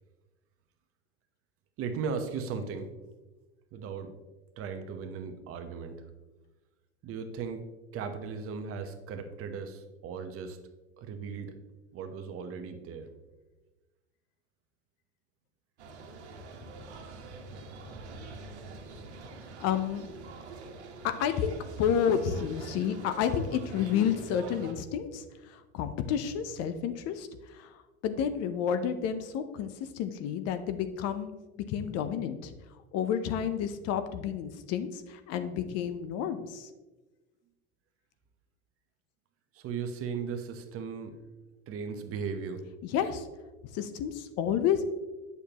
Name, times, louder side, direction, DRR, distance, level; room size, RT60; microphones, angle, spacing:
voice 1, 1.8-2.9 3.7-4.1 4.6-6.0 7.0-7.6 7.9-10.6 11.0-11.5 11.9-13.1 39.5-41.2 41.7-42.6, right 5 dB, 45° right, 7 dB, 1.0 m, -37 dB
sound 1, 15.8-24.7, right 3 dB, 85° right, 1.3 m, -45 dB
voice 2, 19.6-20.1 21.0-31.3 31.7-32.5 32.9-36.7 42.9-43.3 43.7-44.9, left 8 dB, 50° left, 10 dB, 0.7 m, -30 dB
8.3 x 6.8 x 3.0 m, 1.2 s
hypercardioid pair, 100°, 33 cm